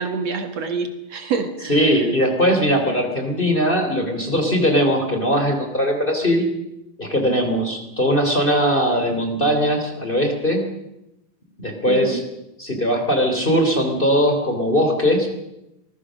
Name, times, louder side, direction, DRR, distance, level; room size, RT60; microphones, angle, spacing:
voice 1, 0.0-2.1 11.9-12.2, right 4 dB, 60° right, 7 dB, 2.7 m, -27 dB
voice 2, 1.7-6.5 7.0-10.6 11.6-12.2 12.6-15.3, equal, 15° left, 4 dB, 3.4 m, -20 dB
25.0 x 20.0 x 6.4 m, 0.88 s
omnidirectional pair, 3.4 m